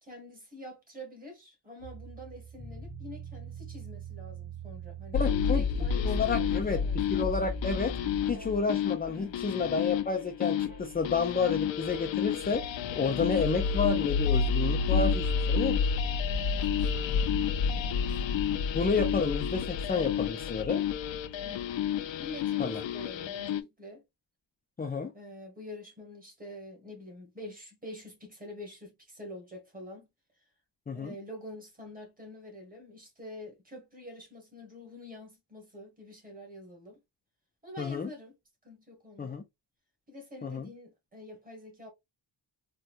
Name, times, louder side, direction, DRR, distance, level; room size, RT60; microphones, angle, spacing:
voice 1, 0.0-7.0 9.1-9.4 16.5-17.2 17.7-18.2 21.4-21.7 22.2-24.0 25.1-30.1 30.9-37.0 37.6-38.3 38.6-39.4 40.1-41.9, left 1 dB, 20° right, 1.3 m, -46 dB
sound 1, 1.8-10.1 10.7-11.5 13.4-15.1 16.2-18.8, equal, 45° right, 2.3 m, -43 dB
sound 2, 5.1-23.6, left 6 dB, 70° left, 0.5 m, -30 dB
voice 2, 5.1-5.6 6.0-6.8 7.1-7.9 8.3-12.6 12.9-15.8 18.5-20.8 22.6-22.8 24.8-25.1 30.9-31.2 37.8-38.1 39.2-39.4 40.4-40.7, left 4 dB, 20° left, 0.3 m, -30 dB
4.1 x 2.2 x 2.4 m
wide cardioid pair, 170°, 47 cm